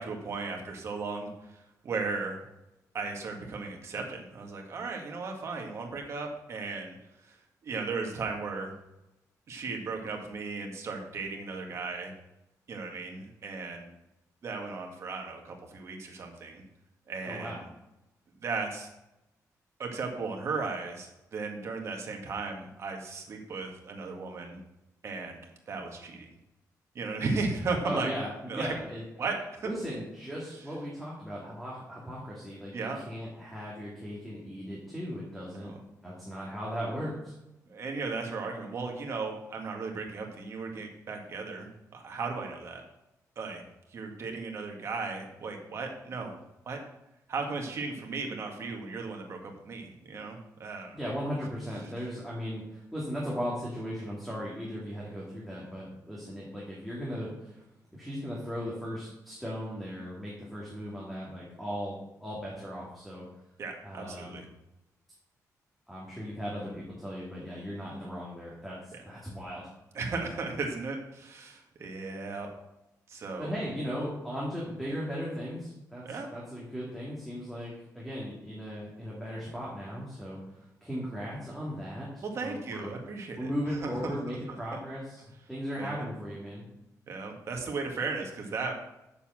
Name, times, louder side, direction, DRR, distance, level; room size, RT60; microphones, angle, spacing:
voice 1, 0.0-1.5 1.8-2.4 2.9-7.0 7.2-7.4 7.6-8.7 9.5-12.1 12.7-13.9 14.4-16.6 17.1-17.6 18.4-18.9 19.8-24.6 25.0-25.4 25.7-26.3 27.0-28.1 28.5-28.7 29.2-29.7 32.7-33.0 35.6-35.7 37.7-42.8 43.4-43.6 43.9-46.4 46.7-46.8 47.3-51.0 63.6-64.5 68.9-69.0 69.9-72.5 73.1-73.5 76.0-76.3 82.2-83.5 83.8-84.8 85.8-86.1 87.1-88.7, right 4 dB, 50° right, 2 dB, 1.8 m, -36 dB
voice 2, 17.2-17.6 27.8-29.0 29.7-35.7 36.0-37.3 50.9-57.6 57.9-63.3 63.8-64.4 65.9-68.8 69.0-69.7 73.4-82.9 83.4-85.1 85.5-86.7, equal, ahead, -6 dB, 2.3 m, -37 dB
7.1 x 6.9 x 7.3 m, 0.91 s
wide cardioid pair, 175°, 6 cm